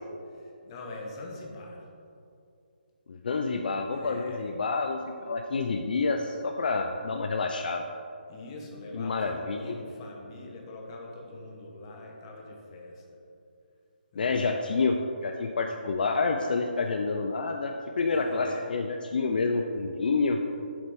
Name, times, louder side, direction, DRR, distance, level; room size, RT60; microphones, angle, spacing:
voice 1, 0.4-1.8 3.9-4.5 8.3-13.0 14.1-14.4 18.1-18.6, left 2 dB, 30° left, 0 dB, 0.9 m, -43 dB
voice 2, 3.1-7.8 8.9-9.8 14.2-15.0 15.2-20.4, left 4 dB, 60° left, 4 dB, 0.4 m, -28 dB
7.7 x 4.0 x 3.5 m, 2.5 s
hypercardioid pair, 155°, 5 cm